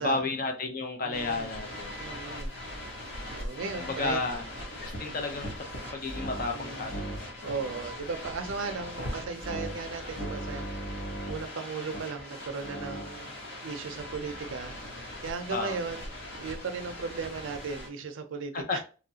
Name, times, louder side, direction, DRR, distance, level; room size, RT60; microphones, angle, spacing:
voice 1, 0.0-1.9 3.8-4.4 4.8-5.7 5.9-7.3 7.6-7.7 15.5-15.8 18.5-18.8, left 3 dB, 45° left, 0.5 m, -32 dB
voice 2, 1.0-1.5 2.0-2.5 3.3-4.2 6.5-6.9 7.4-10.7 11.3-14.8 15.2-16.1 16.4-18.8, right 4 dB, 75° right, 0.5 m, -36 dB
sound 1, 1.1-17.9, equal, 70° left, 1.2 m, -39 dB
3.0 x 2.4 x 2.7 m
head